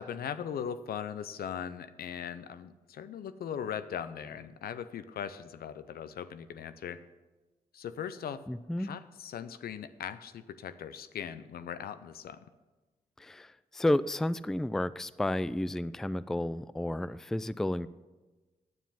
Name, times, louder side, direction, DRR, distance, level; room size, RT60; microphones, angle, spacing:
voice 1, 0.0-7.0 7.7-8.4 8.8-12.4, left 8 dB, 70° left, 13 dB, 0.5 m, -39 dB
voice 2, 8.5-8.9 13.2-17.9, left 1 dB, 5° left, 16 dB, 0.3 m, -31 dB
9.3 x 7.3 x 5.7 m, 1.2 s
supercardioid pair, 45°, 16 cm